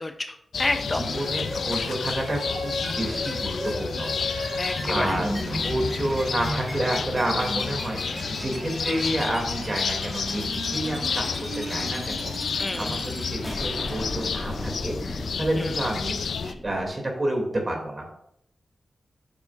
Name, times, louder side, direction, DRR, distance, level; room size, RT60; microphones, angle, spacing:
voice 1, 0.0-1.0 4.6-5.1 12.6-12.9 15.6-15.7, left 2 dB, 30° left, 7 dB, 0.5 m, -29 dB
sound 1, 0.5-16.5, left 6 dB, 80° left, 0.4 m, -31 dB
voice 2, 0.8-11.3 11.6-18.1, right 1 dB, 35° right, 1 dB, 2.3 m, -30 dB
sound 2, 1.0-14.7, equal, 55° right, 2.2 m, -36 dB
sound 3, 2.8-2.9 3.2-3.3 3.6-3.7 4.0-4.1 4.4-4.5 4.8-16.9, left 1 dB, 5° left, 2.1 m, -37 dB
9.2 x 7.1 x 2.4 m, 0.73 s
wide cardioid pair, 85°, 0 cm